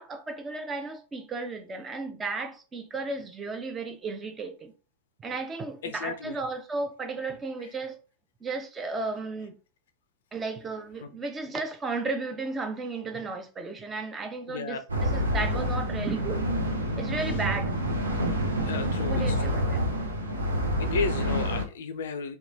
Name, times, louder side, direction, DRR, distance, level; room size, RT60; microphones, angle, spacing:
voice 1, 0.0-4.7 5.2-8.0 8.4-9.6 10.3-16.5 17.0-17.7 19.1-19.8, right 3 dB, 20° right, 0.5 m, -34 dB
voice 2, 5.8-6.4 7.6-7.7 11.0-11.1 14.5-14.8 18.6-19.5 20.8-22.4, left 4 dB, 60° left, 0.3 m, -33 dB
Ambiance Wind Strong Warehouse Loop, 14.9-21.6, equal, 75° right, 0.6 m, -28 dB
3.0 x 2.2 x 2.5 m
figure-of-eight pair, 90°, 0 cm